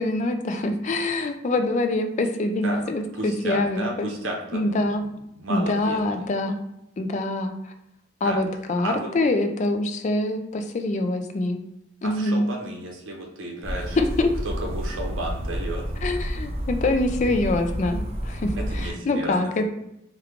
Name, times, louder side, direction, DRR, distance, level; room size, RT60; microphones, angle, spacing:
voice 1, 0.0-4.1 4.5-5.0 5.5-6.6 7.0-7.5 8.2-11.6 12.0-12.4 14.0-14.3 16.0-19.6, left 2 dB, 40° left, 6 dB, 0.3 m, -25 dB
voice 2, 3.1-5.1 5.4-6.2 8.2-8.4 8.8-9.1 12.0-14.0 14.4-15.8 18.5-19.5, right 1 dB, 85° right, 0 dB, 0.7 m, -33 dB
sound 1, 13.6-18.9, equal, 30° right, 0.4 m, -30 dB
3.0 x 2.3 x 3.5 m, 0.81 s
head